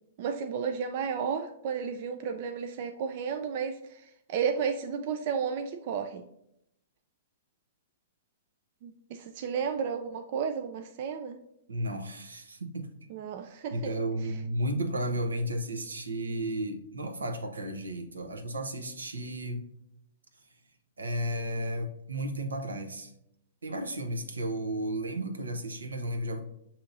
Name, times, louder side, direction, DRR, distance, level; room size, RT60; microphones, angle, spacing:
voice 1, 0.2-6.2 8.8-11.4 13.1-13.9, right 6 dB, 50° right, 6 dB, 0.3 m, -33 dB
voice 2, 11.7-12.9 13.7-19.6 21.0-23.1 23.6-26.4, right 1 dB, 85° right, 5 dB, 0.7 m, -33 dB
6.8 x 2.8 x 2.6 m, 0.78 s
hypercardioid pair, 115°, 0 cm